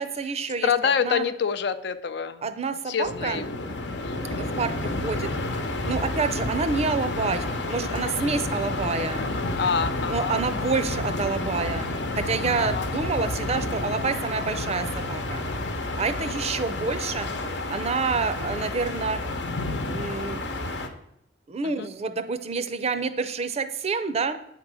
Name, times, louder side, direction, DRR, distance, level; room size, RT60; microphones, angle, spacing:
voice 1, 0.0-0.7 1.0-1.2 2.4-3.4 4.4-5.3 5.8-9.2 10.1-11.9 12.1-15.5 16.0-19.2 19.8-20.7 21.5-24.4, right 4 dB, 35° right, 11 dB, 0.5 m, -28 dB
voice 2, 0.6-2.4 2.9-3.5 4.0-4.4 8.2-8.4 9.6-10.4 12.6-12.9 16.1-16.3 21.6-21.9, left 6 dB, 70° left, 11 dB, 0.5 m, -27 dB
sound 1, 3.0-20.9, left 2 dB, 85° left, 1.0 m, -30 dB
8.4 x 3.7 x 6.2 m, 0.78 s
head